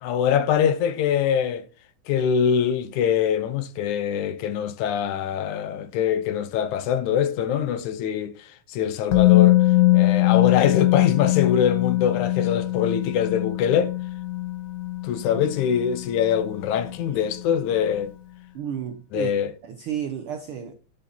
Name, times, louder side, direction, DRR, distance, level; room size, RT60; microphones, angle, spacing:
voice 1, 0.0-1.6 2.1-8.4 8.7-9.6 9.9-13.9 15.0-18.1 19.1-19.5, left 8 dB, 80° left, 2.2 m, -23 dB
Musical instrument, 9.1-17.0 17.3-17.5, left 17 dB, 60° left, 1.8 m, -22 dB
voice 2, 18.5-19.3 19.6-20.7, right 9 dB, 85° right, 1.2 m, -32 dB
11.5 x 5.6 x 4.2 m
omnidirectional pair, 3.5 m